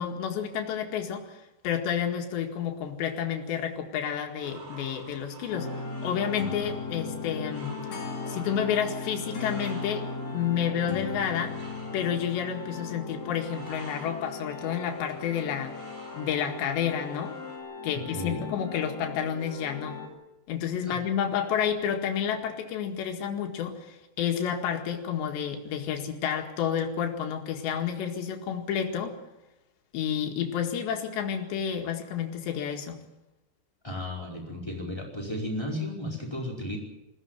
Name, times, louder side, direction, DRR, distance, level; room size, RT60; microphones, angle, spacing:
voice 1, 0.0-1.4 1.6-7.8 8.3-11.6 11.9-15.7 16.1-17.4 17.8-20.0 20.5-29.2 29.9-33.0, left 8 dB, 85° left, 3 dB, 4.2 m, -30 dB
sound 1, 4.4-17.6, right 3 dB, 50° right, 6.0 m, -50 dB
sound 2, 5.5-20.1, left 4 dB, 55° left, 4.1 m, -37 dB
voice 2, 17.9-18.5 20.9-21.0 33.8-36.8, left 1 dB, 5° left, -1 dB, 4.2 m, -34 dB
21.0 x 16.5 x 9.2 m, 0.97 s
omnidirectional pair, 4.9 m